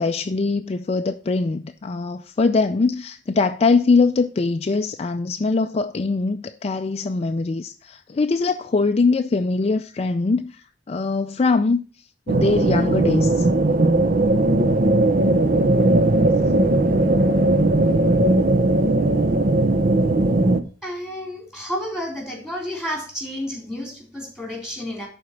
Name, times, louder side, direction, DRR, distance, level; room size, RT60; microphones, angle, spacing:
voice 1, 0.0-11.8 12.3-13.5, left 4 dB, 35° left, 0.4 m, -22 dB
sound 1, 12.3-20.6, right 2 dB, 50° right, 0.7 m, -18 dB
voice 2, 20.8-25.1, equal, 5° right, 3.6 m, -31 dB
11.5 x 4.3 x 5.9 m
head